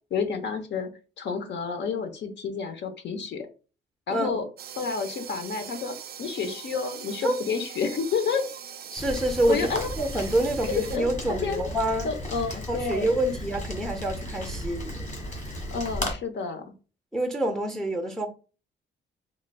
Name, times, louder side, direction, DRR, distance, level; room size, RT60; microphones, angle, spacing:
voice 1, 0.1-0.9 1.2-3.5 4.1-4.5 4.8-8.5 9.5-9.9 10.7-11.0 11.4-11.6 12.0-13.1 15.7-16.6, left 5 dB, 65° left, 0.8 m, -30 dB
voice 2, 4.1-4.4 7.2-7.4 8.9-9.7 10.0-12.1 12.7-15.1 17.1-18.3, right 1 dB, ahead, 0.5 m, -27 dB
sound 1, 4.6-11.0, right 8 dB, 50° right, 0.4 m, -41 dB
Rain, 9.0-16.1, left 1 dB, 40° left, 1.6 m, -35 dB
3.9 x 3.2 x 2.2 m
cardioid pair, 90°, 20 cm